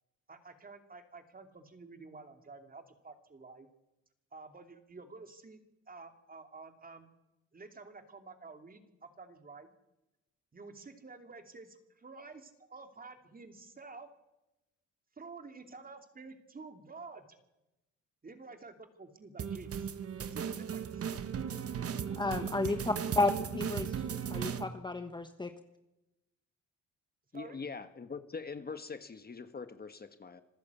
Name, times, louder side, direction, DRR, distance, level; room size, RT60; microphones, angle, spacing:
voice 1, 0.3-3.7 4.3-5.6 5.9-7.1 7.5-9.7 10.5-14.1 15.2-17.4 18.2-19.9 20.2-21.0 22.7-23.3 27.3-27.6, right 3 dB, 30° right, 6 dB, 2.8 m, -50 dB
sound 1, 19.4-24.6, right 8 dB, 50° right, 1.4 m, -36 dB
voice 2, 22.2-23.9 24.3-25.5, left 2 dB, 15° left, 8 dB, 1.2 m, -32 dB
voice 3, 27.3-30.4, left 5 dB, 30° left, 9 dB, 1.4 m, -43 dB
26.0 x 14.5 x 8.4 m, 0.97 s
cardioid pair, 90°, 30 cm